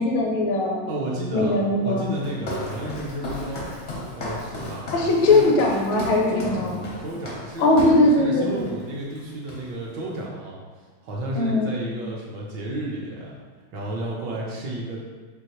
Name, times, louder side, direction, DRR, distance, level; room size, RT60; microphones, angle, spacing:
voice 1, 0.0-0.8 1.3-2.1 4.9-6.8 7.6-8.6 11.3-11.7, left 2 dB, 75° left, 0 dB, 1.3 m, -20 dB
voice 2, 0.9-3.7 4.1-5.4 5.9-7.7 8.1-10.6 11.0-13.3 13.7-15.1, right 1 dB, 70° right, -4 dB, 1.2 m, -32 dB
Walk footsteps, 2.1-8.1 8.6-8.8 9.1-9.9, left 1 dB, 55° left, 0.7 m, -35 dB
4.5 x 2.7 x 2.9 m, 1.4 s
omnidirectional pair, 2.2 m